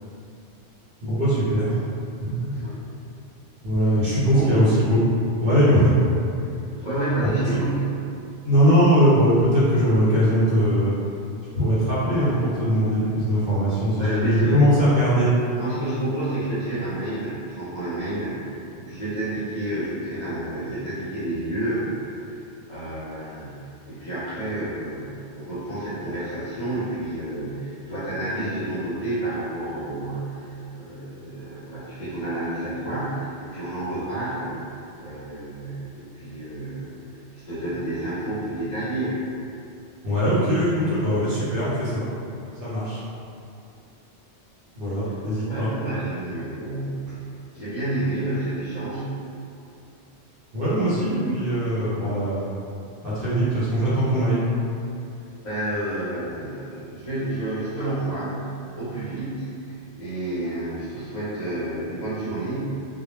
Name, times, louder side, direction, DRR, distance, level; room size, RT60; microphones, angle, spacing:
voice 1, 1.0-1.8 2.2-2.5 3.6-5.0 5.4-6.0 8.4-10.9 11.5-15.3 40.0-42.1 42.6-43.0 44.8-45.7 50.5-52.4 53.0-54.4, equal, 55° right, -10 dB, 0.8 m, -20 dB
voice 2, 4.3-4.6 6.8-7.9 14.0-14.6 14.9-15.0 15.6-18.5 18.7-22.3 22.7-34.7 35.0-37.0 37.3-39.3 45.4-47.1 47.5-49.1 55.4-58.5 58.7-62.9, right 1 dB, 45° left, -12 dB, 0.8 m, -30 dB
2.1 x 2.1 x 3.0 m, 2.5 s
omnidirectional pair, 1.2 m